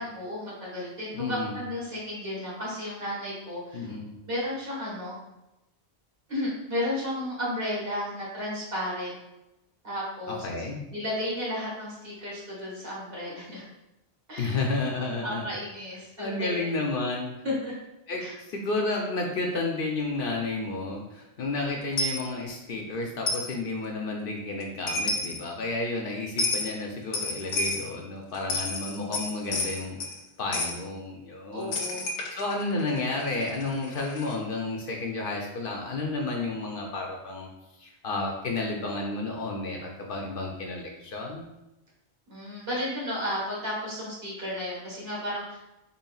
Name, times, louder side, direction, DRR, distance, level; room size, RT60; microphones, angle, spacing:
voice 1, 0.0-3.9 4.3-5.2 6.3-9.2 9.8-10.4 10.9-13.6 14.3-14.6 15.2-16.7 17.4-17.7 18.2-18.3 28.9-29.1 31.5-32.0 42.3-45.7, left 1 dB, 60° right, -6 dB, 1.7 m, -33 dB
voice 2, 1.1-1.6 3.7-4.2 10.3-10.8 14.4-15.6 16.2-17.4 18.1-30.0 30.4-31.8 32.4-37.5 37.8-41.5, left 3 dB, 60° left, 0 dB, 0.7 m, -31 dB
Coin (dropping), 22.0-22.2 23.3-23.5 24.6-24.7 24.9-25.4 26.4-26.7 27.1-27.9 28.3-30.2 30.5-30.8 31.7-34.4, left 2 dB, 85° left, 1.0 m, -31 dB
4.0 x 3.7 x 2.3 m, 0.95 s
omnidirectional pair, 1.1 m